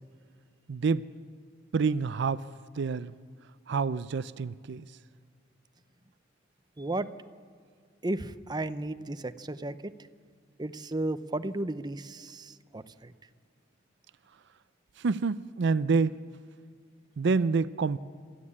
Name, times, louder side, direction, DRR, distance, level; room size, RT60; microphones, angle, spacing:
voice 1, 0.7-1.1 1.7-2.4 2.8-3.1 3.7-4.9 15.0-16.2 17.2-18.0, right 4 dB, 65° right, 16 dB, 0.5 m, -27 dB
voice 2, 6.8-7.1 8.0-9.9 10.6-13.1, right 2 dB, 20° right, 12 dB, 0.7 m, -34 dB
27.0 x 14.0 x 8.6 m, 2.1 s
head